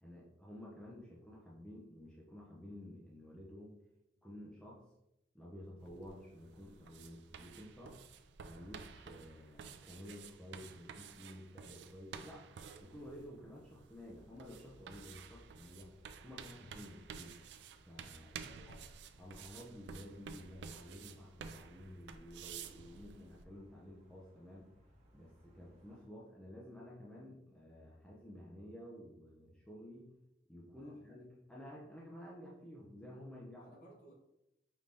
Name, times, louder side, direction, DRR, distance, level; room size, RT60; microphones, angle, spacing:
voice 1, 0.0-3.8 4.2-4.8 5.3-8.0 8.4-12.5 12.8-15.9 16.2-17.4 17.9-18.8 19.2-24.7 25.1-30.1 30.5-33.7, left 1 dB, 5° left, -5 dB, 0.5 m, -52 dB
sound 1, 5.8-23.4, right 6 dB, 65° right, 0.3 m, -52 dB
sound 2, 14.0-26.1, equal, 35° right, 1.1 m, -66 dB
voice 2, 18.4-18.9 30.8-31.3 33.6-34.1, right 1 dB, 50° left, -3 dB, 1.2 m, -61 dB
5.2 x 2.7 x 3.2 m, 0.88 s
head